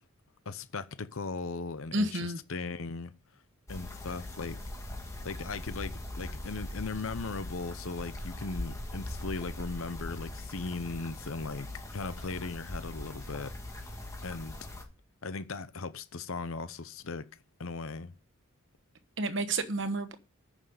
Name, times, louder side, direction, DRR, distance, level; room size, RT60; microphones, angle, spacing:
voice 1, 0.5-3.1 3.7-4.6 5.2-13.5 13.8-13.9 14.2-14.5 15.2-17.3 17.6-18.1, left 4 dB, 70° left, 0.7 m, -38 dB
voice 2, 1.9-2.4 19.2-20.2, right 2 dB, 55° right, 1.2 m, -30 dB
sound 1, 3.7-14.8, left 1 dB, 15° left, 1.6 m, -41 dB
9.2 x 6.4 x 8.0 m
head